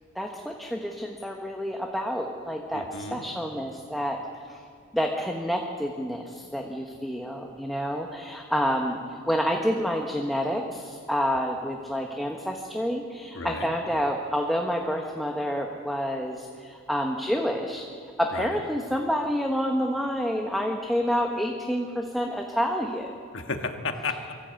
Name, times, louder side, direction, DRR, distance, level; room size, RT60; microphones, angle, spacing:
voice 1, 0.1-4.2 4.5-4.6 4.9-17.8 18.2-23.1, equal, ahead, 1 dB, 1.0 m, -28 dB
voice 2, 2.7-3.3 13.3-13.7 18.3-18.5 23.3-24.3, left 3 dB, 55° left, 5 dB, 1.6 m, -33 dB
23.0 x 14.0 x 8.2 m, 2.2 s
head